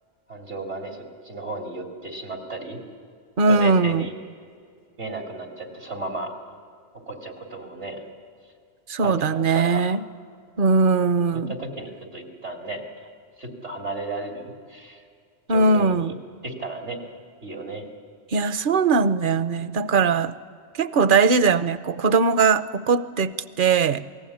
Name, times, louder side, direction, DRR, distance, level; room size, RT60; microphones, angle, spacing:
voice 1, 0.3-2.8 3.5-4.1 5.0-6.3 6.9-8.0 9.0-9.8 11.3-13.1 13.4-15.0 15.5-16.1 16.4-17.0 17.4-17.9, right 2 dB, 90° right, 2 dB, 3.4 m, -34 dB
voice 2, 3.4-4.1 8.9-10.0 10.6-11.5 15.5-16.1 18.3-20.4 20.7-24.0, right 4 dB, 55° right, 13 dB, 0.9 m, -20 dB
27.5 x 19.5 x 8.5 m, 2.2 s
omnidirectional pair, 1.1 m